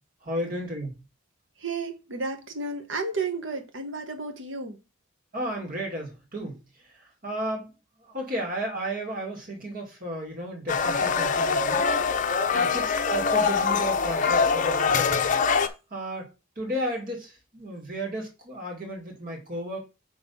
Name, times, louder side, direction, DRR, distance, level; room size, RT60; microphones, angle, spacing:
voice 1, 0.2-0.9 5.3-6.6 7.2-7.7 8.0-11.8 12.5-15.3 15.9-16.3 16.6-19.8, right 1 dB, 45° right, 2.2 m, -33 dB
voice 2, 1.6-4.8 12.5-12.7, right 3 dB, 75° right, 1.2 m, -32 dB
sound 1, 10.7-15.7, left 5 dB, 40° left, 0.6 m, -24 dB
5.4 x 3.9 x 5.4 m
head